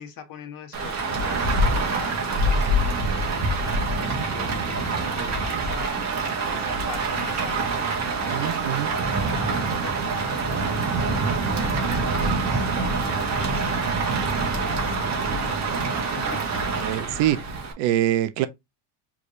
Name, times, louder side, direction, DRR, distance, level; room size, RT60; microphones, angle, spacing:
voice 1, 0.0-5.9 6.4-11.5 12.2-16.4, left 7 dB, 45° left, 1.5 m, -42 dB
Rain, 0.7-17.7, right 3 dB, 35° right, 1.7 m, -25 dB
voice 2, 8.3-8.9 15.2-15.4 16.8-18.5, right 12 dB, 65° right, 0.8 m, -25 dB
4.8 x 3.5 x 2.7 m
cardioid pair, 130°, 49 cm